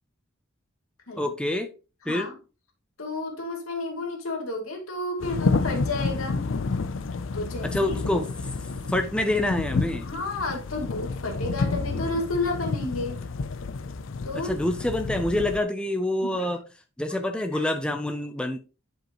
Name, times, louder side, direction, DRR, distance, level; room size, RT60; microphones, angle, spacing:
voice 1, 1.2-1.7 2.1-2.3 7.6-8.3 8.9-10.1 14.4-16.6 17.0-18.6, left 1 dB, 5° left, 0.5 m, -26 dB
voice 2, 2.1-2.4 3.0-6.5 7.3-8.2 10.0-13.2 14.2-14.5 16.2-16.5 17.5-17.7, left 2 dB, 90° left, 2.6 m, -31 dB
sound 1, 5.2-15.6, left 4 dB, 70° left, 0.5 m, -30 dB
10.5 x 5.1 x 3.0 m
head